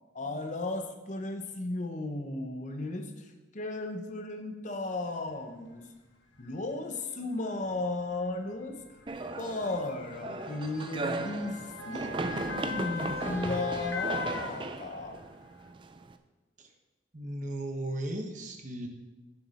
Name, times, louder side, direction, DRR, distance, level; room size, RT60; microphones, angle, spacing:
voice 1, 0.1-3.1 3.5-5.9 6.4-8.8 9.4-11.6 11.9-12.1 12.6-15.2, left 2 dB, 40° left, 5 dB, 0.8 m, -35 dB
Motor vehicle (road) / Siren, 5.3-5.4 6.3-6.5 7.6-15.2 15.7-15.8, left 4 dB, 75° left, 1.2 m, -40 dB
sound 1, 9.1-16.1, right 3 dB, 25° right, 0.4 m, -37 dB
voice 2, 17.1-18.9, right 1 dB, 40° right, 3 dB, 1.1 m, -36 dB
10.0 x 7.1 x 4.2 m, 1.1 s
head